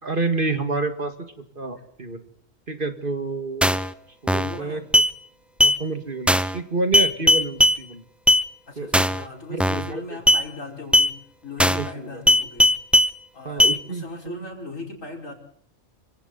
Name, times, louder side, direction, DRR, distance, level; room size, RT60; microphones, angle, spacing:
voice 1, 0.0-1.1 1.6-2.2 2.7-3.8 4.2-4.8 5.6-8.0 8.8-9.1 9.5-10.0 11.7-12.2 13.5-14.4, right 3 dB, 40° right, 8 dB, 2.2 m, -29 dB
sound 1, 3.6-3.9 4.3-4.6 4.9-5.1 5.6-5.8 6.3-6.6 6.9-7.8 8.3-8.4 8.9-9.2 9.6-9.9 10.3-10.4 10.9-11.1 11.6-11.9 12.3-13.1 13.6-13.8, equal, ahead, 0.7 m, -17 dB
voice 2, 4.4-4.9 8.7-12.7 13.3-15.3, left 2 dB, 85° left, 1 dB, 5.7 m, -38 dB
28.5 x 25.0 x 4.1 m, 0.65 s
omnidirectional pair, 1.3 m